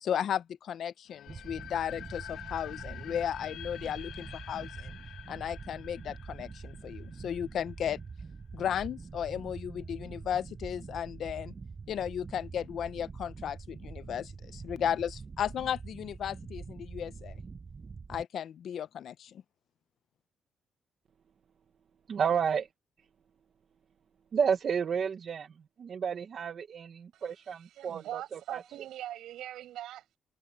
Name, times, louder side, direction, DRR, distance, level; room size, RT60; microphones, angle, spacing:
voice 1, 0.0-4.9 5.3-8.0 8.5-11.5 11.9-17.4 18.1-19.4, left 9 dB, 55° left, 0.6 m, -35 dB
sound 1, 1.1-8.0, left 11 dB, 75° left, 1.1 m, -47 dB
sound 2, 1.3-18.2, right 5 dB, 25° right, 7.0 m, -45 dB
voice 2, 22.1-22.7 24.3-25.5 25.8-28.6, right 7 dB, 40° right, 0.9 m, -31 dB
voice 3, 27.1-30.2, right 13 dB, 85° right, 6.8 m, -42 dB
cardioid pair, 160°, 0 cm